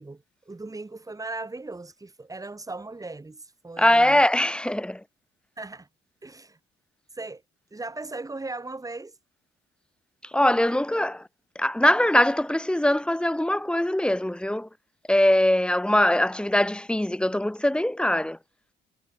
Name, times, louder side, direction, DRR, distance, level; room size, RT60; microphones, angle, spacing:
voice 1, 0.0-4.2 5.6-5.9 6.2-6.6 7.1-7.4 7.7-9.2, right 3 dB, 15° right, 2.1 m, -38 dB
voice 2, 3.8-5.0 10.2-11.3 11.6-14.7 15.1-18.4, left 1 dB, 5° left, 0.8 m, -22 dB
cardioid pair, 90°, 20 cm